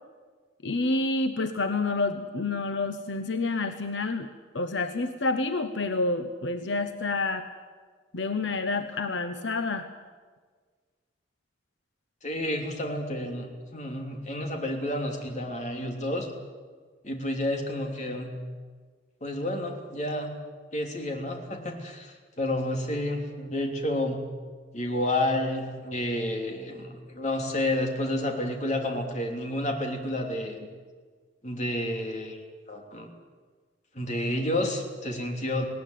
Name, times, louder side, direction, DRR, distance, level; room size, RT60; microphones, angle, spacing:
voice 1, 0.6-4.3 4.5-7.5 8.1-9.9, left 3 dB, 80° left, 9 dB, 1.0 m, -28 dB
voice 2, 12.2-16.3 17.0-18.3 19.2-20.3 20.7-24.2 24.7-30.7 31.4-32.4 32.7-33.1 33.9-35.7, left 1 dB, 40° left, 3 dB, 3.2 m, -30 dB
19.5 x 18.0 x 9.4 m, 1.5 s
head